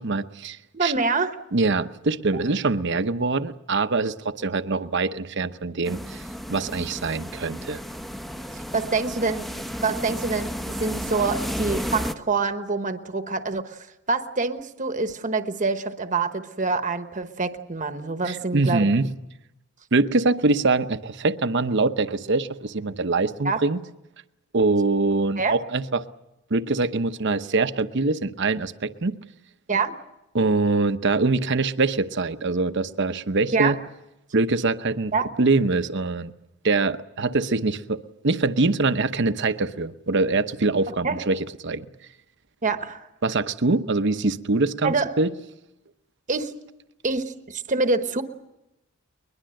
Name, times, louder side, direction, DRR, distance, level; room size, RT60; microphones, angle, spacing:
voice 1, 0.0-0.9 1.5-7.8 18.2-19.1 19.9-23.8 24.5-26.0 26.5-29.1 30.3-33.8 34.3-36.3 36.6-41.9 43.2-45.3, right 3 dB, 55° right, 0.9 m, -24 dB
voice 2, 0.7-1.4 2.3-2.4 8.5-18.9 23.4-23.6 25.4-25.6 29.7-30.0 33.5-33.7 35.1-35.3 41.0-41.2 42.6-43.1 44.8-45.1 46.3-46.5 47.0-48.2, right 4 dB, 35° right, 1.1 m, -26 dB
sound 1, 5.8-12.1, equal, ahead, 0.8 m, -32 dB
22.0 x 21.5 x 7.7 m
head